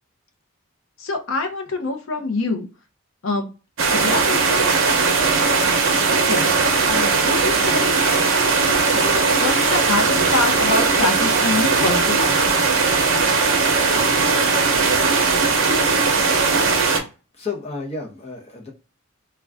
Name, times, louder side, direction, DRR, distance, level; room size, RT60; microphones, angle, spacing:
voice 1, 1.0-2.7 3.2-3.5 3.9-4.7 6.2-6.5 6.9-8.0 8.9-12.7, left 3 dB, 65° left, 5 dB, 0.6 m, -25 dB
sound 1, 3.8-17.0, right 4 dB, 65° right, 0.7 m, -18 dB
voice 2, 17.4-18.7, left 4 dB, 30° left, 1 dB, 0.7 m, -31 dB
2.4 x 2.2 x 3.3 m, 0.31 s
head